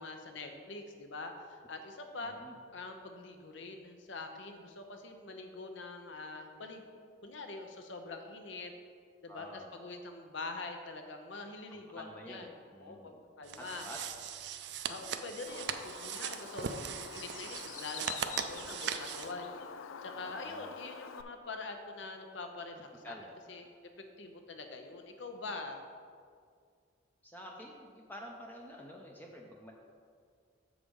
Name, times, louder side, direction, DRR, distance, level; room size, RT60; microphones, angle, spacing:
voice 1, 0.0-2.3 2.7-8.7 9.2-12.5 12.8-13.9 14.9-19.5 20.0-23.2 23.5-23.7 24.2-25.8, left 3 dB, 65° left, 5 dB, 0.8 m, -44 dB
voice 2, 2.2-2.5 9.3-9.7 11.7-13.2 13.6-14.0 20.2-20.7 23.0-23.6 27.2-29.7, equal, 10° left, 0 dB, 0.5 m, -49 dB
sound 1, 13.4-19.3, right 8 dB, 60° right, 0.4 m, -39 dB
Bird, 15.5-21.2, left 7 dB, 80° left, 0.4 m, -46 dB
7.2 x 5.0 x 5.3 m, 2.2 s
head